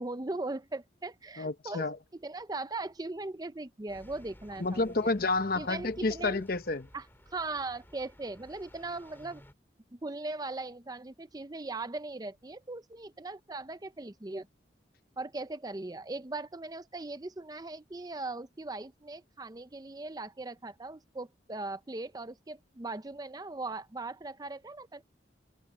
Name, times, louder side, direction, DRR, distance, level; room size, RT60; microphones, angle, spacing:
voice 1, 0.0-1.8 2.1-4.9 5.5-6.4 6.9-7.1 7.3-9.4 9.9-14.5 15.2-25.0, right 2 dB, 20° right, 0.5 m, -39 dB
voice 2, 1.4-2.0 4.6-6.9, left 3 dB, 50° left, 0.9 m, -30 dB
sound 1, 3.9-9.5, equal, 10° left, 3.9 m, -55 dB
head